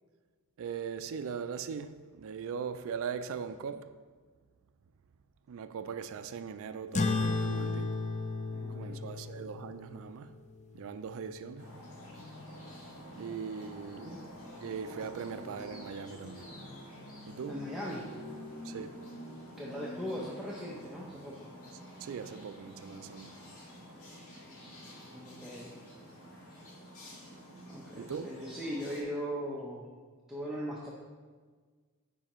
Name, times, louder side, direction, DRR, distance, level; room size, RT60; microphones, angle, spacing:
voice 1, 0.6-3.9 5.5-8.0 8.8-10.3 10.7-11.7 13.2-14.2 14.6-16.5 17.3-17.6 18.6-19.0 22.0-23.3 27.9-28.3, right 6 dB, 65° right, 0.3 m, -40 dB
sound 1, 6.9-11.8, left 3 dB, 30° left, 0.4 m, -35 dB
voice 2, 8.5-9.1 14.0-14.2 17.5-18.0 19.6-21.4 25.1-25.7 27.7-29.9 30.3-30.9, equal, ahead, 0.7 m, -39 dB
sound 2, 11.6-29.0, equal, 70° left, 1.8 m, -48 dB
9.8 x 4.9 x 3.0 m
head